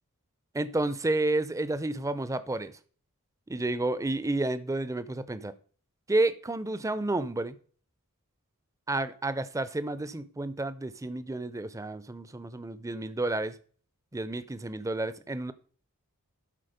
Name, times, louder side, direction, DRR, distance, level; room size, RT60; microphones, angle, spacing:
voice 1, 0.5-2.7 3.5-5.5 6.1-7.6 8.9-13.6 14.1-15.5, right 2 dB, 15° right, 0.5 m, -30 dB
12.0 x 4.6 x 5.1 m
head